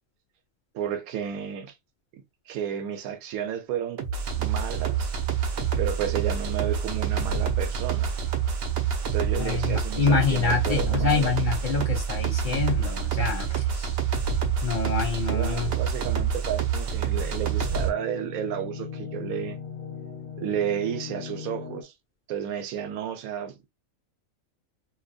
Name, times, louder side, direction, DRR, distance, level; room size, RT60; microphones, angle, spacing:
voice 1, 0.7-1.7 2.1-4.0 4.4-5.1 5.8-8.1 9.1-11.3 15.3-19.6 20.4-21.9 22.3-23.7, right 9 dB, 85° right, 1.0 m, -32 dB
sound 1, 4.0-17.9, right 7 dB, 65° right, 0.6 m, -27 dB
voice 2, 9.4-14.0 14.6-15.7, left 6 dB, 70° left, 0.4 m, -26 dB
sound 2, 16.9-21.8, left 7 dB, 45° left, 0.8 m, -39 dB
2.7 x 2.2 x 2.6 m
omnidirectional pair, 1.5 m